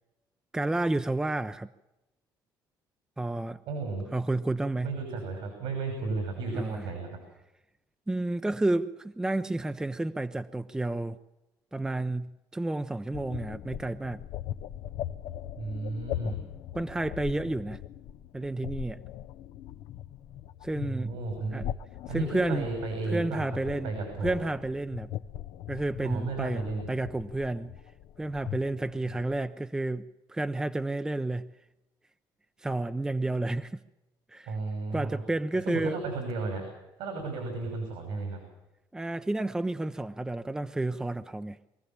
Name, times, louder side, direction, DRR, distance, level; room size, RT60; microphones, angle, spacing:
voice 1, 0.5-1.7 3.2-3.6 4.1-4.9 6.5-6.9 8.1-11.2 11.7-14.2 16.7-17.8 18.3-19.0 20.6-21.2 21.5-21.7 22.1-22.7 23.1-23.9 24.2-25.1 25.7-27.7 28.2-31.5 32.6-33.8 34.3-34.5 34.9-36.0 38.9-41.6, right 2 dB, 10° right, 10 dB, 0.6 m, -31 dB
voice 2, 3.7-4.0 4.8-7.1 15.6-16.4 20.9-21.6 22.1-24.4 26.0-26.9 34.5-35.2 35.7-36.7 37.0-38.4, right 3 dB, 85° right, 4 dB, 6.1 m, -33 dB
sound 1, 13.1-29.5, left 11 dB, 75° left, 0.8 m, -40 dB
24.0 x 15.5 x 7.4 m, 0.97 s
cardioid pair, 135°, 8 cm